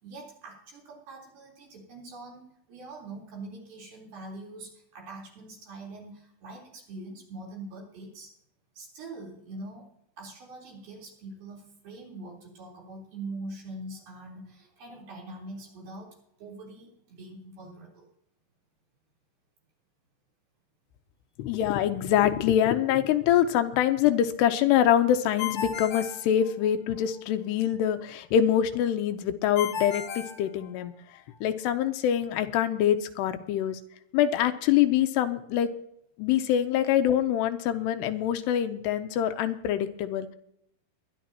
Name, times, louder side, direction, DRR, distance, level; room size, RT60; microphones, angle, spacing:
voice 1, 0.0-8.3 8.8-9.9 10.2-18.1, right 2 dB, 60° right, -3 dB, 5.5 m, -43 dB
voice 2, 21.4-30.9 31.4-33.8 34.1-35.7 36.2-40.4, left 10 dB, 85° left, 8 dB, 2.8 m, -25 dB
Ringtone, 25.4-27.0 29.6-31.2, left 7 dB, 65° left, 1.7 m, -35 dB
22.0 x 11.0 x 2.9 m, 0.73 s
omnidirectional pair, 4.9 m